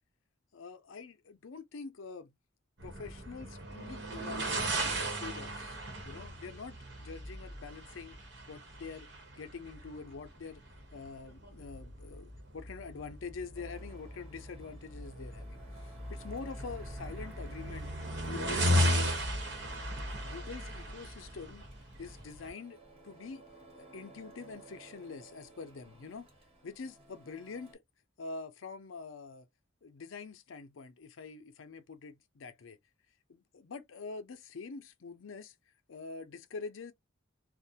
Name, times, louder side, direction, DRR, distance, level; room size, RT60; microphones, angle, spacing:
voice 1, 0.5-2.3 2.8-5.8 6.0-9.1 9.4-10.6 10.9-17.9 18.2-19.0 20.2-21.6 22.0-23.4 23.8-26.3 26.6-27.8 28.2-29.5 29.8-32.8 33.3-35.5 35.9-36.9, left 4 dB, 80° left, 0.5 m, -45 dB
sound 1, 2.8-22.5, equal, 60° right, 0.9 m, -36 dB
Printer, 13.5-27.7, right 2 dB, 30° right, 1.0 m, -56 dB
2.4 x 2.1 x 2.7 m
head